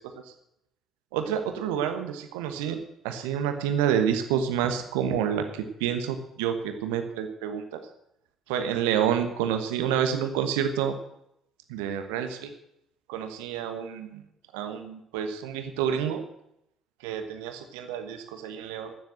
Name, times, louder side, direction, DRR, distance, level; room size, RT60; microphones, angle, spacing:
voice 1, 1.1-2.8 3.0-7.8 8.5-10.9 11.7-12.5 13.1-14.2 14.5-16.2 17.0-18.9, right 8 dB, 70° right, 7 dB, 1.2 m, -28 dB
13.5 x 7.2 x 7.7 m, 0.79 s
figure-of-eight pair, 50°, 0 cm